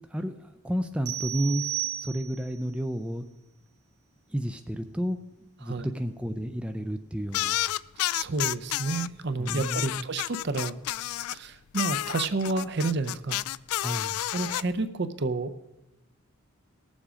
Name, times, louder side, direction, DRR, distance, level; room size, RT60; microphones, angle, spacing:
voice 1, 0.1-3.3 4.3-7.6 9.4-10.1 13.8-14.2, equal, 5° right, 7 dB, 0.4 m, -32 dB
sound 1, 1.1-2.6, right 13 dB, 85° right, 1.5 m, -33 dB
sound 2, 7.3-9.1 9.5-11.4 11.7-14.6, left 14 dB, 90° left, 0.3 m, -30 dB
voice 2, 8.1-10.8 11.3-13.4 14.3-15.6, right 3 dB, 50° right, 10 dB, 0.6 m, -30 dB
19.0 x 7.3 x 5.0 m, 0.98 s
head